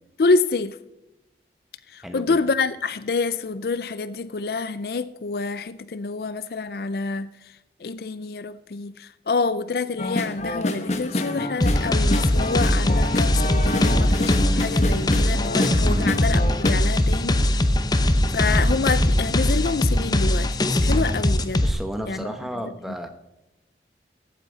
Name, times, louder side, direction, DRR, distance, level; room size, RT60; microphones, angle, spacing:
voice 1, 0.2-0.8 1.9-7.5 7.8-17.4 18.3-20.5 20.8-21.6 22.1-22.3 22.6-22.9, left 4 dB, 60° left, 0.4 m, -27 dB
voice 2, 2.0-2.4 15.8-16.1 21.6-23.1, equal, ahead, 1.1 m, -32 dB
sound 1, 10.0-16.7, left 1 dB, 40° left, 1.1 m, -27 dB
sound 2, 11.6-21.7, left 1 dB, 20° left, 0.7 m, -21 dB
14.5 x 8.5 x 4.0 m
head